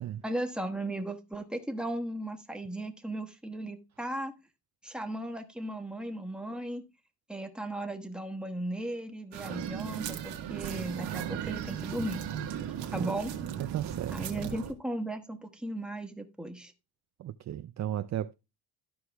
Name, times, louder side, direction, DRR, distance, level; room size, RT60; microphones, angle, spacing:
voice 1, 0.2-4.3 4.8-6.8 7.3-12.2 12.9-13.3 14.1-16.7, right 1 dB, ahead, 1.2 m, -36 dB
sound 1, 9.3-14.7, right 9 dB, 85° right, 1.4 m, -36 dB
voice 2, 13.6-14.6 17.2-18.3, right 12 dB, 45° right, 0.5 m, -35 dB
13.0 x 4.7 x 3.4 m
cardioid pair, 105°, 41 cm